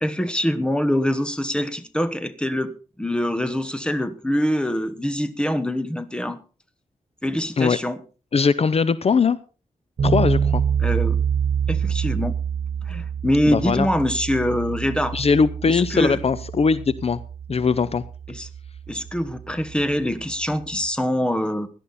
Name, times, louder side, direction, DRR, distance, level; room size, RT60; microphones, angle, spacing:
voice 1, 0.0-2.7 3.0-6.4 7.2-8.0 10.8-11.2 11.7-12.4 12.9-15.2 15.7-16.2 18.3-18.5 18.9-21.7, equal, 5° left, 11 dB, 1.3 m, -24 dB
voice 2, 8.3-9.4 10.0-10.6 13.5-13.9 15.1-17.2 17.5-18.0, left 5 dB, 50° left, 16 dB, 0.6 m, -20 dB
sound 1, 10.0-20.9, right 7 dB, 85° right, 1.3 m, -27 dB
17.0 x 11.5 x 4.2 m, 0.36 s
wide cardioid pair, 110°, 13 cm